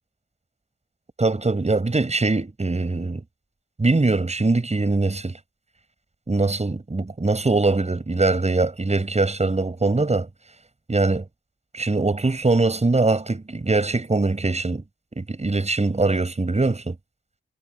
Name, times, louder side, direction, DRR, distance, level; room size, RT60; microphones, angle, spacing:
voice 1, 1.2-3.2 3.8-5.4 6.3-10.3 10.9-11.2 11.7-14.8 15.2-17.0, right 3 dB, 35° right, 7.1 m, -22 dB
wide cardioid pair, 95°, 21 cm